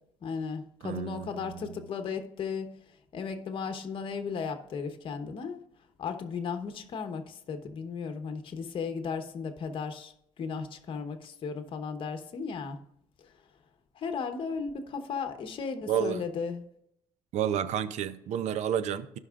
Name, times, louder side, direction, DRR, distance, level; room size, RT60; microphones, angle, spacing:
voice 1, 0.2-2.7 3.1-5.6 6.0-12.8 13.2-13.3 13.9-16.6, left 5 dB, 45° left, 1.0 m, -35 dB
voice 2, 0.8-1.8 15.9-16.2 17.3-19.2, right 9 dB, 75° right, 0.6 m, -31 dB
16.0 x 5.4 x 2.4 m
cardioid pair, 120°, 12 cm